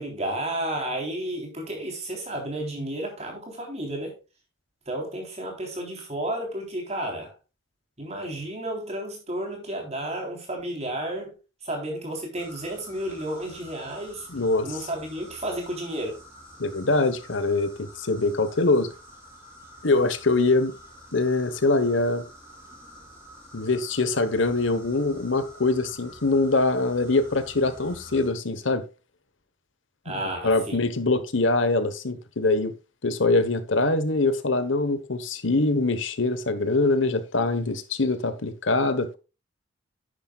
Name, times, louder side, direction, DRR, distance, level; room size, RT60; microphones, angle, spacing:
voice 1, 0.0-4.1 4.9-7.3 8.0-11.3 11.6-14.3 14.6-16.2 30.1-30.8, right 1 dB, 30° right, 3.6 m, -32 dB
sound 1, 12.4-28.3, equal, 10° right, 4.1 m, -48 dB
voice 2, 14.3-14.7 16.6-18.9 19.8-20.7 21.1-22.2 23.5-28.8 30.1-30.2 30.4-32.7 33.0-39.2, left 3 dB, 70° left, 1.1 m, -23 dB
10.5 x 10.0 x 2.4 m
head